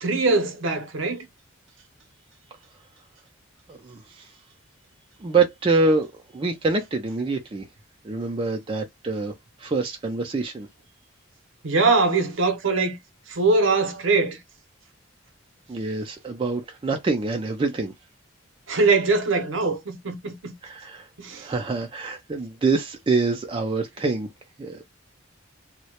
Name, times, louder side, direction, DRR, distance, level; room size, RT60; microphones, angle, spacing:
voice 1, 0.0-1.3 11.6-13.0 13.3-14.4 18.7-20.5 21.2-21.5, right 3 dB, 70° right, 0.6 m, -22 dB
voice 2, 3.7-4.3 5.2-7.6 8.0-9.3 9.6-10.7 15.7-17.9 20.6-21.1 21.4-24.3 24.6-24.8, right 3 dB, 25° right, 0.3 m, -25 dB
2.2 x 2.0 x 2.8 m
head